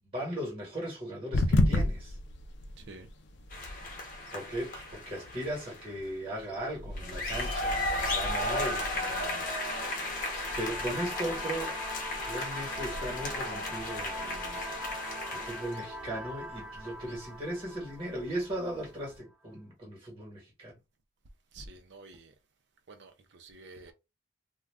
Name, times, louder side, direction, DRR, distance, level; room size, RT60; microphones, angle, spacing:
voice 1, 0.0-2.2 4.3-9.6 10.1-11.8 12.2-14.6 15.3-20.7, right 1 dB, 30° right, 1.3 m, -38 dB
sound 1, 1.3-19.2, left 1 dB, 70° left, 0.5 m, -37 dB
voice 2, 2.8-3.1 21.5-22.3 22.9-23.9, right 2 dB, 70° right, 0.5 m, -49 dB
sound 2, 3.5-6.0 6.9-15.9, left 1 dB, 45° left, 0.9 m, -35 dB
Earth In A Tube, 8.7-19.1, equal, 5° right, 0.5 m, -43 dB
2.4 x 2.3 x 3.3 m
head